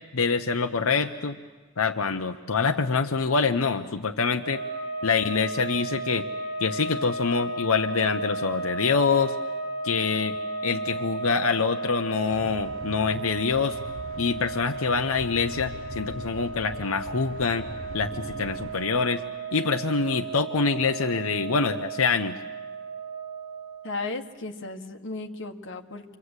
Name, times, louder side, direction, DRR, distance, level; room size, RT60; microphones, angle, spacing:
voice 1, 0.1-1.4 1.8-4.6 5.0-6.3 6.6-9.4 9.8-10.4 10.6-13.8 14.2-17.7 17.9-19.2 19.5-22.4, left 5 dB, 90° left, 6 dB, 0.8 m, -25 dB
sound 1, 4.4-24.0, right 3 dB, 50° right, 6.0 m, -34 dB
sound 2, 12.3-18.8, right 2 dB, 70° right, 0.9 m, -42 dB
voice 2, 23.8-26.2, left 3 dB, 60° left, 4 dB, 1.6 m, -35 dB
28.5 x 24.0 x 8.1 m, 1.4 s
head